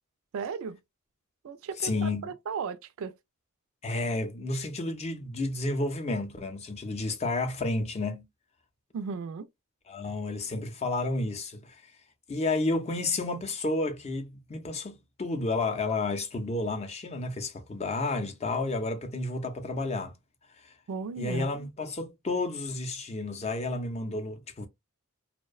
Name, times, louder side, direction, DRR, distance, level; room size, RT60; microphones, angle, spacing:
voice 1, 0.3-0.8 1.4-3.1 8.9-9.5 20.9-21.5, right 5 dB, 65° right, 0.4 m, -35 dB
voice 2, 1.8-2.3 3.8-8.3 9.9-11.8 12.3-20.2 20.6-20.7 21.2-24.7, left 2 dB, 30° left, 0.5 m, -31 dB
2.6 x 2.1 x 2.3 m
head